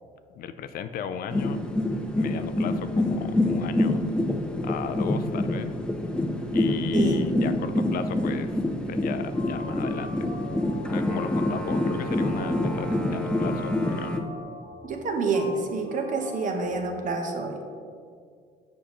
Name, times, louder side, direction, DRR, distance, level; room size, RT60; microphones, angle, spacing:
voice 1, 0.4-1.6 2.1-4.0 4.6-5.7 6.5-8.5 8.9-10.3 10.9-14.2, left 7 dB, 60° left, 10 dB, 0.4 m, -35 dB
sound 1, 1.3-14.2, left 1 dB, 5° left, 0.5 m, -26 dB
voice 2, 6.9-7.3 14.8-17.7, right 4 dB, 50° right, 4 dB, 0.9 m, -28 dB
sound 2, 9.1-17.1, left 3 dB, 25° left, 1.0 m, -43 dB
6.9 x 5.2 x 3.1 m, 2.1 s
cardioid pair, 110°, 17 cm